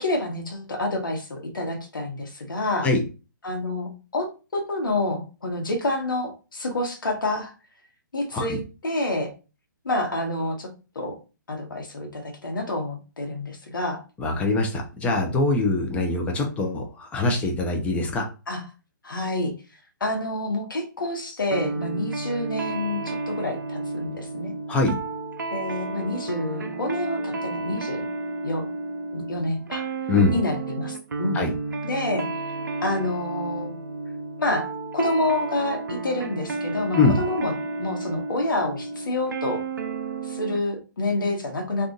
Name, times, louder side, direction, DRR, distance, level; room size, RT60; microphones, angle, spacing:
voice 1, 0.0-2.9 3.4-4.3 4.5-7.5 8.1-9.3 9.8-10.7 10.9-11.2 11.5-14.0 18.5-18.6 19.0-19.5 20.0-24.5 25.5-28.0 28.4-28.6 29.1-29.9 30.3-31.4 31.8-32.3 32.8-33.8 34.4-39.6 40.2-41.9, left 2 dB, 75° left, 2 dB, 1.2 m, -28 dB
voice 2, 14.2-18.3 24.7-24.9 30.1-30.3 31.3-31.5 36.9-37.2, left 3 dB, 10° left, 2 dB, 0.7 m, -23 dB
sound 1, 21.5-40.6, right 3 dB, 70° right, 0.5 m, -32 dB
2.7 x 2.5 x 3.8 m, 0.33 s
hypercardioid pair, 140°, 11 cm